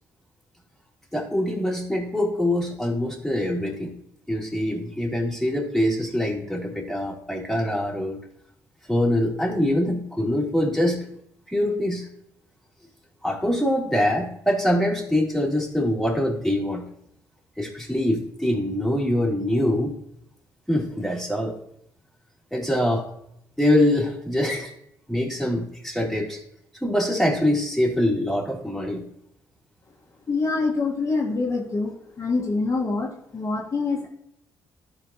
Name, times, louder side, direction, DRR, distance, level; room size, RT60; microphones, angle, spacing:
voice 1, 1.1-3.9 4.3-8.2 8.9-11.0 11.5-12.1 13.2-16.8 17.6-20.0 20.7-21.6 22.5-23.1 23.6-24.7 25.1-26.4 26.8-29.0, left 1 dB, ahead, -3 dB, 3.1 m, -24 dB
voice 2, 30.3-34.1, left 3 dB, 40° left, -2 dB, 1.9 m, -25 dB
13.0 x 4.9 x 3.0 m, 0.73 s
supercardioid pair, 65°, 8 cm